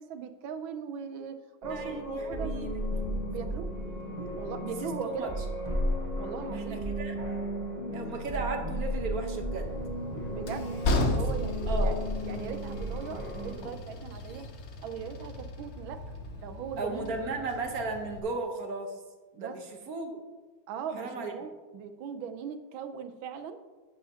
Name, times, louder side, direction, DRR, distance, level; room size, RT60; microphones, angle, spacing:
voice 1, 0.0-1.3 1.6-2.7 3.3-3.7 4.4-5.3 6.2-6.8 10.3-12.0 12.2-14.5 14.8-16.0 16.3-17.2 19.4-19.6 20.7-23.6, right 7 dB, 85° right, 9 dB, 1.5 m, -39 dB
sound 1, 1.6-13.5, equal, 25° right, 1.2 m, -34 dB
voice 2, 1.7-2.7 5.0-5.3 6.5-7.2 7.9-9.8 11.7-12.0 16.8-19.0 19.3-20.2 21.0-21.3, right 3 dB, 55° right, 4 dB, 1.4 m, -35 dB
Train, 9.6-18.2, left 2 dB, 50° left, 0.8 m, -35 dB
11.0 x 8.6 x 2.8 m, 1.3 s
omnidirectional pair, 2.1 m